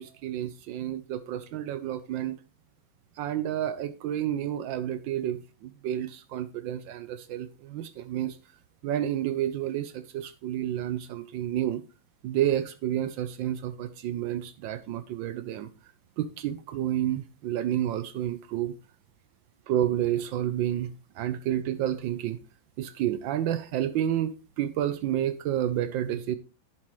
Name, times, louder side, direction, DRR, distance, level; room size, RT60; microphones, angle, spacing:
voice 1, 0.0-2.4 3.2-8.4 8.8-11.8 12.2-15.7 16.2-18.7 19.7-22.4 22.8-26.4, right 11 dB, 75° right, 1.3 m, -30 dB
10.5 x 7.4 x 3.1 m
omnidirectional pair, 2.2 m